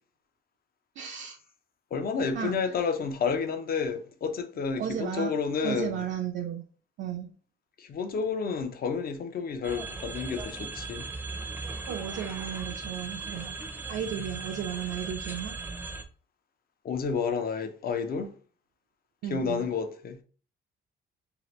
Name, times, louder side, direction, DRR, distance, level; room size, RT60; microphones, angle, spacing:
voice 1, 1.0-1.4 2.3-2.6 4.8-5.3 5.6-6.6 7.0-7.3 11.9-13.6 13.9-15.6 19.2-19.7, right 9 dB, 70° right, 0.4 m, -34 dB
voice 2, 1.9-6.0 7.8-11.1 16.8-18.3 19.3-20.2, left 5 dB, 50° left, 0.6 m, -30 dB
sound 1, 9.6-16.0, right 3 dB, 10° right, 0.5 m, -38 dB
2.8 x 2.4 x 3.1 m
cardioid pair, 90°, 20 cm